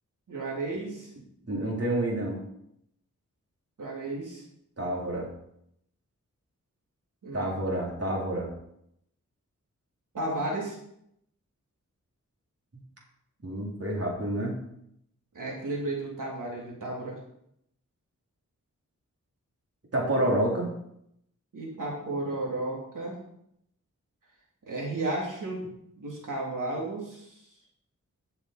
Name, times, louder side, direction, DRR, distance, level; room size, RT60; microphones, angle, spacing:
voice 1, 0.3-1.1 3.8-4.4 7.2-7.6 10.1-10.8 15.3-17.2 21.5-23.1 24.7-25.6 26.0-27.4, right 2 dB, 85° right, -3 dB, 3.4 m, -33 dB
voice 2, 1.4-2.4 4.8-5.3 7.3-8.5 13.4-14.6 19.9-20.7, right 1 dB, 50° right, -2 dB, 3.6 m, -28 dB
13.0 x 6.9 x 4.4 m, 0.75 s
wide cardioid pair, 70°, 31 cm